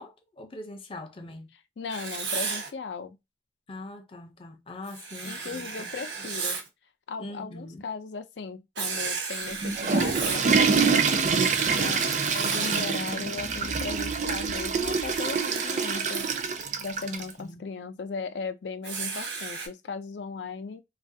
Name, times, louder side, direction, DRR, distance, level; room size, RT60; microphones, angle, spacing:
voice 1, 0.0-1.5 3.7-5.9 6.2-6.4 7.2-7.9 17.0-17.8, left 2 dB, 30° left, 0.5 m, -42 dB
voice 2, 1.8-3.2 5.2-6.6 7.1-11.2 11.7-12.0 12.3-16.3 16.8-20.8, left 5 dB, 80° left, 0.4 m, -37 dB
Writing, 1.9-2.7 4.9-6.7 8.8-10.5 11.1-13.0 14.9-16.4 18.8-19.7, right 5 dB, 85° right, 1.0 m, -34 dB
Water / Toilet flush, 9.5-17.3, right 5 dB, 45° right, 0.4 m, -26 dB
3.2 x 2.3 x 2.7 m
head